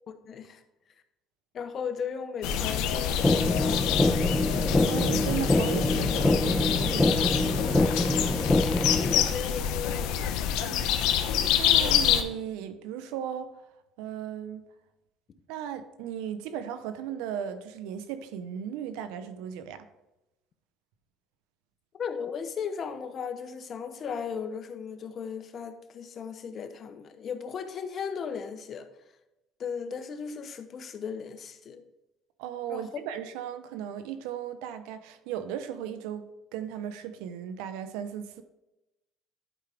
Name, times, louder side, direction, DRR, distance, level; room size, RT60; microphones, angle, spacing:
voice 1, 0.1-0.6 1.5-4.4 8.9-10.2 21.9-28.9 29.6-31.8 32.7-32.9, left 6 dB, 45° left, 0.9 m, -36 dB
sound 1, 2.4-12.2, left 9 dB, 80° left, 0.7 m, -27 dB
sound 2, 3.2-9.2, left 2 dB, 10° left, 0.4 m, -25 dB
voice 2, 4.8-8.1 10.6-11.0 11.6-13.7 14.0-14.7 15.5-19.9 32.4-38.4, right 9 dB, 85° right, 0.7 m, -36 dB
11.0 x 4.9 x 3.4 m
cardioid pair, 105°, 0 cm